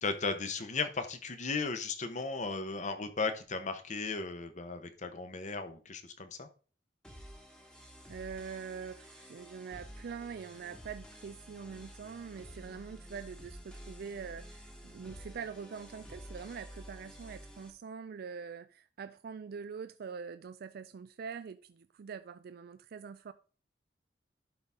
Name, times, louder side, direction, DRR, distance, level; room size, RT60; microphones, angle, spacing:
voice 1, 0.0-6.5, left 4 dB, 40° left, 1.0 m, -36 dB
sound 1, 7.0-17.7, equal, 5° left, 1.3 m, -51 dB
voice 2, 8.1-23.3, right 6 dB, 55° right, 0.4 m, -44 dB
11.5 x 4.1 x 3.6 m
head